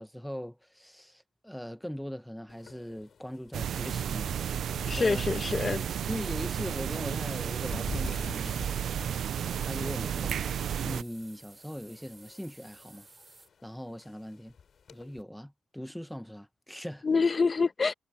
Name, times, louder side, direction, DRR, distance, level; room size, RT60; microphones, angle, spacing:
voice 1, 0.0-4.3 4.9-5.4 5.7-8.7 9.6-13.1 13.6-14.5 14.9-17.1, equal, ahead, 1.1 m, -40 dB
sound 1, 2.5-15.2, left 6 dB, 50° left, 3.4 m, -49 dB
sound 2, 3.5-11.0, right 9 dB, 65° right, 0.4 m, -32 dB
voice 2, 4.9-5.9 17.0-17.9, left 4 dB, 30° left, 1.1 m, -26 dB
sound 3, 9.4-13.5, right 3 dB, 25° right, 3.8 m, -55 dB
cardioid pair, 135°, 0 cm